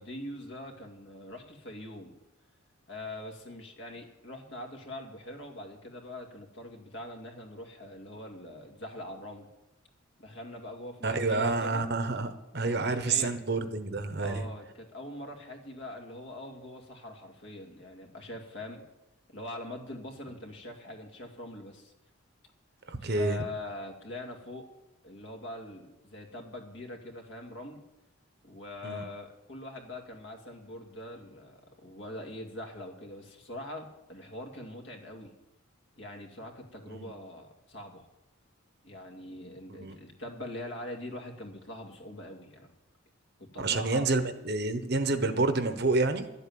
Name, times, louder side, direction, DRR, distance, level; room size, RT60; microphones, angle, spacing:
voice 1, 0.0-2.1 2.9-9.5 10.2-11.9 12.8-13.5 14.2-18.8 19.3-21.9 23.0-24.7 25.0-27.8 28.4-35.3 36.0-38.0 38.8-42.7 43.4-44.1, left 1 dB, 55° left, 3 dB, 2.3 m, -43 dB
voice 2, 11.0-14.4 22.9-23.4 28.8-29.0 36.9-37.1 39.7-40.0 43.6-46.3, right 3 dB, 50° right, 9 dB, 1.1 m, -29 dB
12.0 x 8.4 x 9.3 m, 0.94 s
head